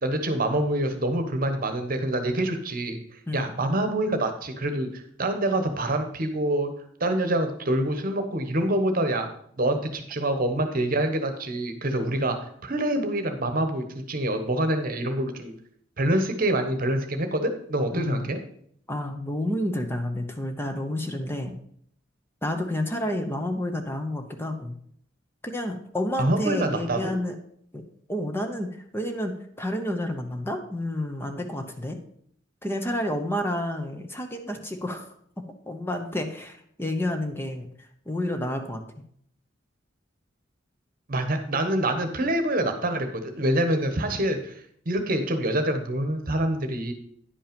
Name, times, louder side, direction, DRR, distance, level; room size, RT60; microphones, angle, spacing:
voice 1, 0.0-3.0 3.3-6.7 7.0-9.3 9.6-15.5 16.0-18.4 26.2-27.2 41.1-44.6 44.9-46.9, right 1 dB, 50° right, 7 dB, 1.1 m, -26 dB
voice 2, 17.9-18.3 18.9-21.6 22.4-24.8 25.4-27.4 27.7-27.8 28.1-28.7 28.9-29.3 29.6-32.0 32.6-35.1 35.7-37.7 38.1-38.8, left 1 dB, 15° left, 5 dB, 0.8 m, -30 dB
10.0 x 5.4 x 5.2 m, 0.65 s
head